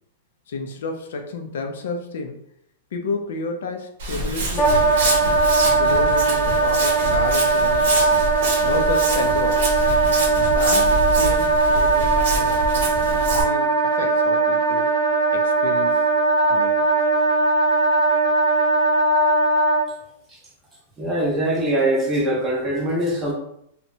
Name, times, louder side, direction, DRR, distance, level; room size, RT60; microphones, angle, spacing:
voice 1, 0.5-2.4 2.9-5.1 5.7-7.9 8.6-9.7 10.3-12.8 13.1-14.9 15.3-16.1 16.5-16.9, left 3 dB, 75° left, 4 dB, 0.4 m, -31 dB
Walk footsteps, 4.0-13.4, right 2 dB, 60° right, 0.8 m, -26 dB
Wind instrument woodwind instrument, 4.6-19.8, right 3 dB, 25° left, 0.7 m, -19 dB
voice 2, 21.0-23.3, right 1 dB, 15° right, -3 dB, 0.7 m, -22 dB
2.7 x 2.1 x 2.6 m, 0.74 s
supercardioid pair, 165°, 0 cm